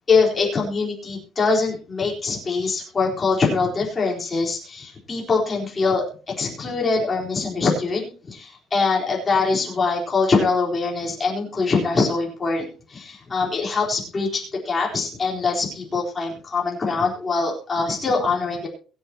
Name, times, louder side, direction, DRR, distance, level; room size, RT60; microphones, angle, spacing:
voice 1, 0.1-6.0 6.4-18.7, left 4 dB, 20° left, -2 dB, 4.0 m, -23 dB
22.5 x 7.8 x 2.9 m, 0.36 s
cardioid pair, 180°, 0 cm